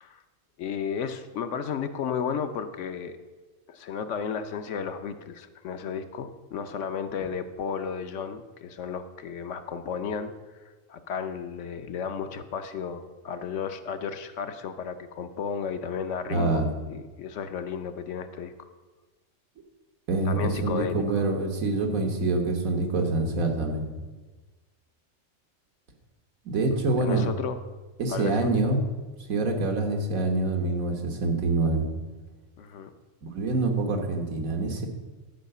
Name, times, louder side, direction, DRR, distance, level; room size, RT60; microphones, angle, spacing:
voice 1, 0.6-3.2 3.7-10.6 10.9-16.6 16.9-18.5 20.3-21.3 27.0-27.6 28.1-28.5 32.6-32.9, left 6 dB, 70° left, 9 dB, 1.0 m, -33 dB
voice 2, 16.3-16.6 20.1-23.9 26.5-27.3 28.0-28.8 29.3-31.9 33.2-34.9, right 2 dB, 85° right, 3 dB, 1.7 m, -26 dB
11.5 x 4.9 x 6.6 m, 1.3 s
omnidirectional pair, 1.4 m